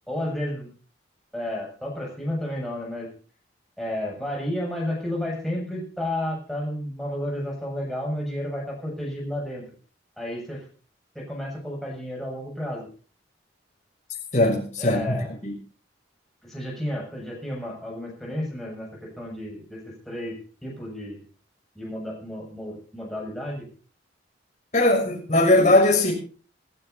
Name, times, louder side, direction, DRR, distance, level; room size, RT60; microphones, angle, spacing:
voice 1, 0.1-0.7 1.3-3.1 3.8-9.6 10.2-10.6 11.2-12.9 14.8-15.3 16.4-21.2 21.8-23.7, left 1 dB, ahead, 7.0 m, -32 dB
voice 2, 14.3-15.2 15.4-15.5 24.7-26.1, left 1 dB, 40° left, 6.2 m, -19 dB
26.5 x 13.0 x 2.8 m
head